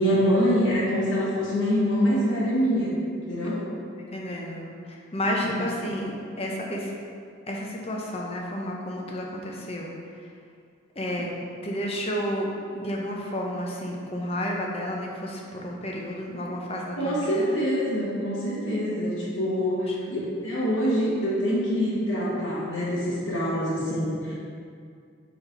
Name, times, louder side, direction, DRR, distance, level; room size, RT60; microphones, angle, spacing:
voice 1, 0.0-2.9 3.3-3.6 5.4-5.5 16.9-24.3, equal, 85° left, -9 dB, 1.4 m, -25 dB
voice 2, 4.1-4.7 5.1-6.9 7.5-9.9 11.0-11.3 11.6-12.5 12.7-17.5 19.7-19.9, equal, 30° left, -1 dB, 0.8 m, -31 dB
5.7 x 4.2 x 4.6 m, 2.3 s
head